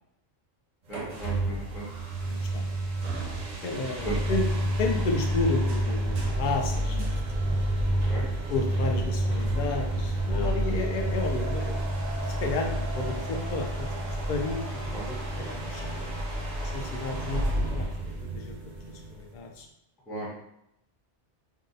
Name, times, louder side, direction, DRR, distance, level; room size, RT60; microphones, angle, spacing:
voice 1, 0.9-1.9 3.8-4.2 6.9-7.1 8.1-8.2 10.4-10.8 14.9-15.1 20.1-20.3, right 2 dB, ahead, -7 dB, 0.6 m, -37 dB
sound 1, 0.9-19.4, right 1 dB, 50° right, 0.7 m, -29 dB
voice 2, 2.2-2.8 3.6-4.5 4.8-7.2 8.0-11.8 12.4-16.1 16.7-18.6 18.9-19.7, left 3 dB, 55° left, 1 dB, 0.6 m, -32 dB
2.7 x 2.0 x 3.9 m, 0.79 s
omnidirectional pair, 1.2 m